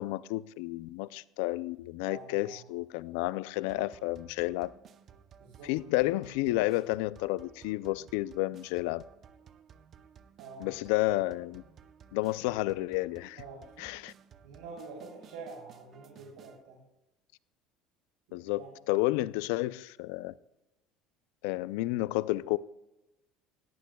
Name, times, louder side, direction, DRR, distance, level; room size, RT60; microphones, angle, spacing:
voice 1, 0.0-4.7 5.6-9.0 10.6-11.6 12.1-13.4 13.8-14.1 18.3-20.3 21.4-22.6, left 18 dB, 85° left, 0.4 m, -31 dB
voice 2, 2.1-2.6 5.4-5.7 10.4-10.7 13.4-13.7 14.4-16.8 18.3-18.7, right 4 dB, 85° right, 3.0 m, -47 dB
sound 1, 3.7-16.6, right 7 dB, 45° right, 0.7 m, -56 dB
19.0 x 14.5 x 2.3 m
supercardioid pair, 115°, 0 cm